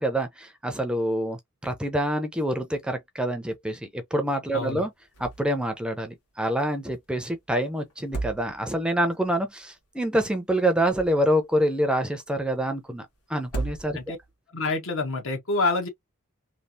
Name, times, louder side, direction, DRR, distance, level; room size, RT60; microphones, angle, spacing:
voice 1, 0.0-4.9 5.2-14.1, right 1 dB, 5° right, 0.5 m, -26 dB
voice 2, 4.5-4.9 13.9-14.2 14.5-15.9, left 3 dB, 65° left, 1.0 m, -27 dB
sound 1, 5.1-5.6 5.9-6.0 7.9-8.9 10.6-11.5 13.4-14.3, right 3 dB, 80° left, 1.3 m, -35 dB
3.2 x 2.4 x 2.6 m
head